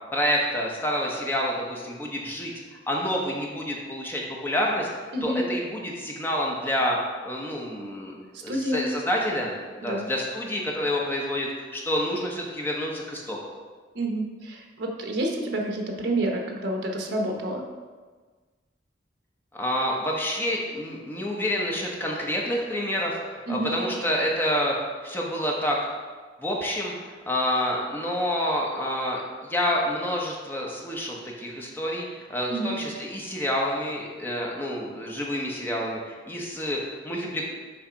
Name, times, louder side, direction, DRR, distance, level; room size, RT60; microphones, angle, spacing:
voice 1, 0.1-2.5 2.9-4.9 5.2-7.0 7.2-8.2 8.4-13.4 19.5-24.8 25.0-25.8 26.4-37.4, equal, 10° left, -2 dB, 1.0 m, -28 dB
voice 2, 8.3-8.8 9.8-10.0 13.9-17.6 23.5-23.8 32.5-32.8, right 1 dB, 65° right, 2 dB, 1.0 m, -29 dB
7.2 x 3.3 x 5.1 m, 1.4 s
head